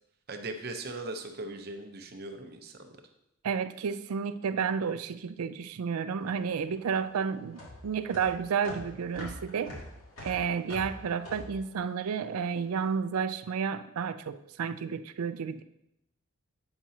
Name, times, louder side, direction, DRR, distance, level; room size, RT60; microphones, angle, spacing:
voice 1, 0.3-2.9, right 2 dB, 45° right, 6 dB, 0.7 m, -39 dB
voice 2, 3.4-9.7 10.2-15.6, right 6 dB, 90° right, 12 dB, 0.4 m, -31 dB
sound 1, 6.2-12.7, left 1 dB, 75° left, 2.3 m, -45 dB
8.7 x 6.0 x 2.7 m, 0.81 s
head